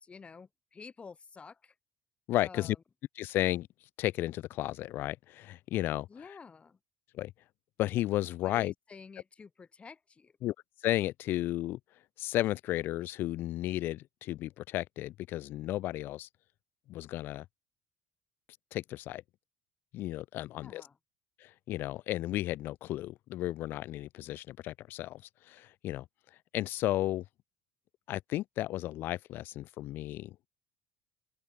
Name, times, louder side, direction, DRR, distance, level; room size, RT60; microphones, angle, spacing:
voice 1, 0.0-1.7 2.4-2.8 6.1-6.8 8.4-10.3 20.5-21.0, left 5 dB, 30° left, 1.5 m, -50 dB
voice 2, 2.3-2.8 3.2-3.7 4.0-6.1 7.1-7.3 7.8-8.7 10.4-10.5 10.8-11.8 12.2-16.3 16.9-17.4 18.7-19.2 19.9-20.8 21.4-26.0 26.5-27.2 28.1-30.4, left 15 dB, 65° left, 0.7 m, -33 dB
open air
supercardioid pair, 75°, 4 cm